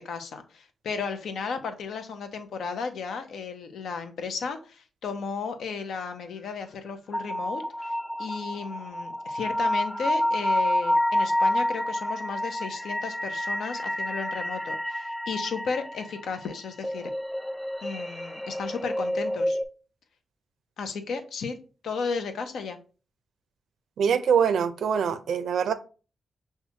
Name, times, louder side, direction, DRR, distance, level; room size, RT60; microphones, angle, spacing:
voice 1, 0.0-17.1 17.8-19.6 20.8-21.6 21.8-22.8, left 5 dB, 85° left, 7 dB, 0.6 m, -34 dB
sound 1, 7.1-19.6, left 1 dB, ahead, 0.3 m, -29 dB
voice 2, 24.0-25.7, right 7 dB, 80° right, 11 dB, 0.4 m, -24 dB
5.7 x 2.3 x 2.8 m, 0.36 s
cardioid pair, 55°, 0 cm